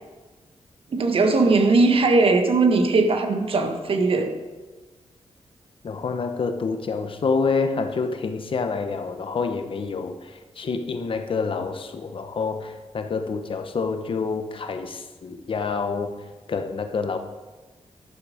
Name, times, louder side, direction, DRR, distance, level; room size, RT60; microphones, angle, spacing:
voice 1, 0.9-4.4, right 3 dB, 55° right, 5 dB, 1.5 m, -19 dB
voice 2, 5.8-16.1 16.5-17.2, left 4 dB, 50° left, 7 dB, 1.0 m, -27 dB
12.5 x 12.0 x 5.1 m, 1.2 s
wide cardioid pair, 160°, 11 cm